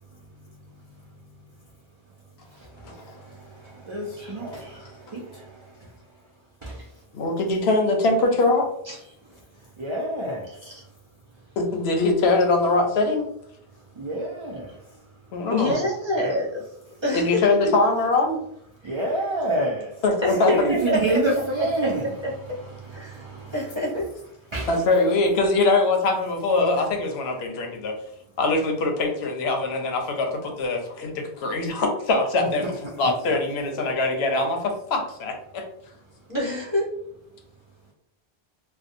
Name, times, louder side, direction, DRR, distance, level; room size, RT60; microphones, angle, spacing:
voice 1, 1.0-1.5 2.5-6.3 6.6-6.9 9.3-11.0 13.7-15.3 18.8-20.0 20.4-23.9 24.5-24.8 32.6-33.0, right 1 dB, 55° right, 0.3 m, -30 dB
voice 2, 7.1-8.7 11.6-13.3 15.3-15.8 17.1-18.4 20.0-20.7 24.7-27.9 28.4-32.6 33.0-35.6, left 3 dB, 85° left, 0.8 m, -22 dB
voice 3, 15.5-16.6 17.0-17.4 18.8-18.9 20.2-21.2 22.2-22.3 22.9-23.2 23.5-24.1 36.3-36.9, left 1 dB, 30° right, 0.8 m, -26 dB
2.6 x 2.1 x 2.5 m
omnidirectional pair, 1.0 m